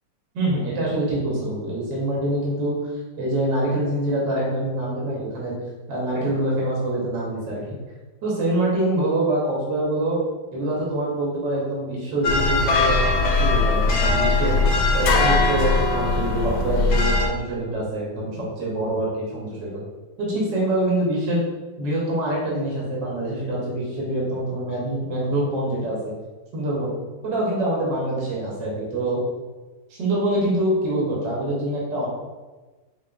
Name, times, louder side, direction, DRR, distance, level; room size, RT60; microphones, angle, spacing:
voice 1, 0.3-2.9 3.2-5.6 5.9-7.8 8.2-10.2 10.5-13.0 13.4-14.6 14.9-19.7 20.2-21.4 21.8-26.1 26.5-26.9 27.2-29.2 30.0-32.1, right 1 dB, 80° right, -5 dB, 1.6 m, -25 dB
sound 1, 12.2-17.3, left 3 dB, 70° left, 1.0 m, -20 dB
3.9 x 3.7 x 2.2 m, 1.2 s
omnidirectional pair, 1.9 m